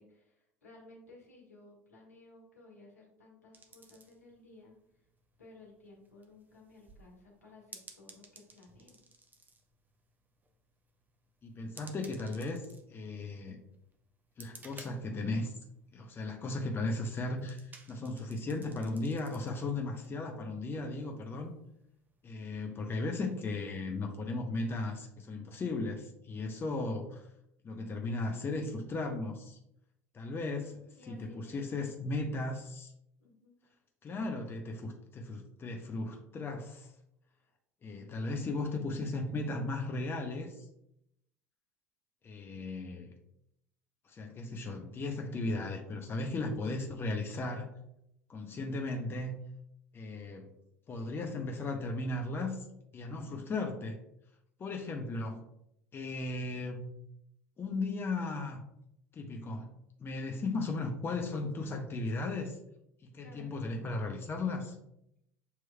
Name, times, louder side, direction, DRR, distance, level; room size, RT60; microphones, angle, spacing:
voice 1, 0.0-4.7 5.4-9.0 31.0-32.3 33.2-33.6 63.2-63.8, left 2 dB, 85° left, -2 dB, 1.3 m, -57 dB
sound 1, 3.5-23.4, right 3 dB, 20° right, 0.7 m, -59 dB
voice 2, 11.4-12.6 12.9-13.6 14.4-15.5 15.9-21.5 22.2-27.2 27.6-29.6 30.1-30.8 31.1-32.9 34.0-36.9 37.8-40.6 42.2-43.1 44.1-47.7 48.3-49.3 49.9-50.5 50.9-52.6 52.9-54.0 54.6-55.4 55.9-56.9 57.6-58.6 59.1-59.7 60.0-62.6 63.0-64.8, left 2 dB, 30° left, 3 dB, 0.7 m, -36 dB
7.0 x 3.0 x 2.3 m, 0.79 s
figure-of-eight pair, 70°, 8 cm